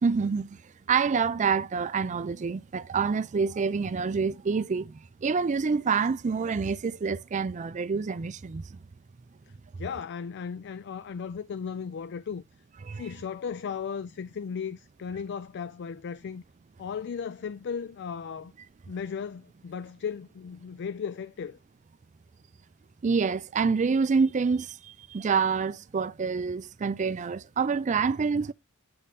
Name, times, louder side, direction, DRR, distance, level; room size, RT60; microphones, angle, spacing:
voice 1, 0.0-0.6 0.9-8.8 12.8-13.1 23.0-28.5, right 5 dB, 35° right, 0.4 m, -27 dB
voice 2, 9.8-12.4 12.9-16.4 16.8-18.5 18.9-21.6, left 6 dB, 55° left, 0.4 m, -36 dB
8.6 x 3.4 x 4.1 m
head